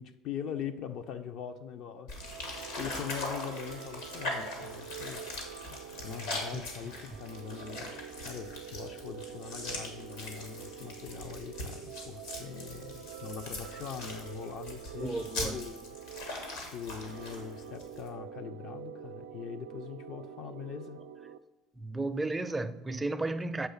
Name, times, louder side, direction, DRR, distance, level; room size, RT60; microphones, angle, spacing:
voice 1, 0.0-2.2 2.8-5.2 5.7-16.0 16.6-21.0, left 8 dB, 60° left, 0.4 m, -42 dB
sound 1, 2.1-18.1, left 2 dB, 85° left, 1.5 m, -41 dB
sound 2, 2.1-21.4, right 9 dB, 85° right, 0.3 m, -46 dB
voice 2, 15.0-15.6 21.8-23.7, right 2 dB, 15° right, 0.4 m, -33 dB
7.0 x 3.2 x 5.6 m
supercardioid pair, 85°, 0 cm